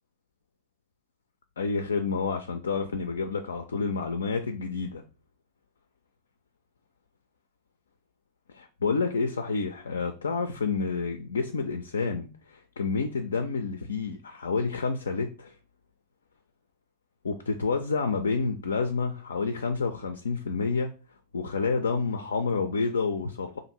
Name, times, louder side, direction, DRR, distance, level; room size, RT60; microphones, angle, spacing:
voice 1, 1.6-5.0 8.8-15.5 17.2-20.9 21.3-23.6, left 4 dB, 70° left, 0.3 m, -29 dB
2.6 x 2.5 x 4.2 m
figure-of-eight pair, 90°, 0 cm